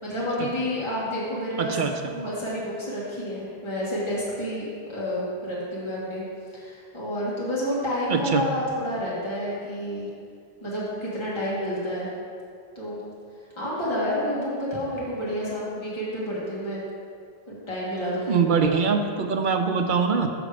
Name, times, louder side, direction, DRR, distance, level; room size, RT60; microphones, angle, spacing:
voice 1, 0.0-6.2 6.5-10.1 10.6-12.1 12.7-13.0 13.6-16.8 17.5-18.5, equal, 30° left, -8 dB, 1.7 m, -29 dB
voice 2, 1.6-1.9 8.1-8.4 18.3-20.3, right 5 dB, 60° right, 5 dB, 0.7 m, -23 dB
6.8 x 6.3 x 4.9 m, 2.3 s
omnidirectional pair, 1.0 m